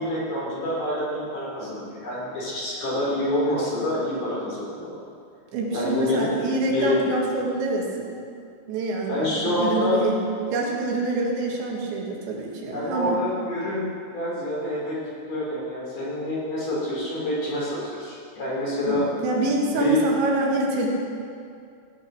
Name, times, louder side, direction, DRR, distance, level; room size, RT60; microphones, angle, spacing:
voice 1, 0.0-5.0 5.7-7.1 9.1-10.0 12.7-15.0 15.2-19.1 19.8-20.0, left 1 dB, 50° left, -5 dB, 4.9 m, -27 dB
voice 2, 5.5-8.2 8.7-10.2 10.5-13.2 18.9-20.9, right 2 dB, 75° right, -1 dB, 4.0 m, -26 dB
17.0 x 10.0 x 6.2 m, 2.4 s
omnidirectional pair, 5.2 m